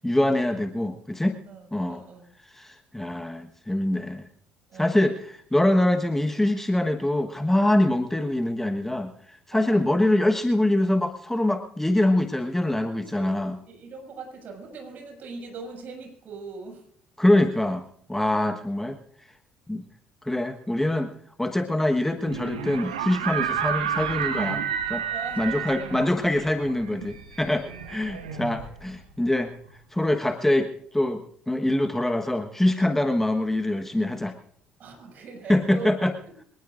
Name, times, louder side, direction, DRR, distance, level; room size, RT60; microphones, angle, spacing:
voice 1, 0.0-1.4 1.7-2.0 2.5-4.2 4.7-9.1 9.5-13.6 17.2-17.8 18.1-19.0 19.7-19.8 20.2-21.1 21.4-24.6 24.9-25.0 25.4-29.5 29.9-34.3 35.5-36.1, left 1 dB, 10° left, 6 dB, 1.3 m, -24 dB
voice 2, 1.5-2.3 4.7-5.0 9.5-9.9 12.9-16.8 25.1-26.0 27.6-27.7 28.1-28.7 34.8-36.0, right 4 dB, 55° right, 2 dB, 6.4 m, -41 dB
sound 1, 22.3-29.1, right 8 dB, 85° right, 1.4 m, -31 dB
25.0 x 19.0 x 2.6 m, 0.62 s
hypercardioid pair, 55°, 4 cm